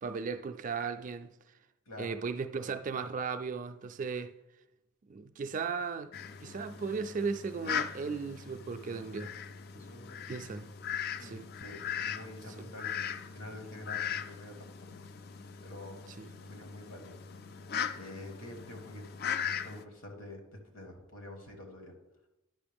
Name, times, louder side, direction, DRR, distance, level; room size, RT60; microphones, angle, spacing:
voice 1, 0.0-1.3 2.0-4.3 5.1-6.1 6.4-9.3 10.3-10.7 11.2-11.4 12.6-12.7 16.1-16.3, right 5 dB, 35° right, 0.3 m, -36 dB
Fowl, 6.1-19.8, left 8 dB, 45° left, 0.3 m, -39 dB
voice 2, 9.7-10.2 11.2-14.7 15.0-15.1 15.6-16.0 16.4-17.1 18.0-21.9, left 1 dB, 70° left, 1.5 m, -47 dB
10.5 x 5.5 x 3.5 m
head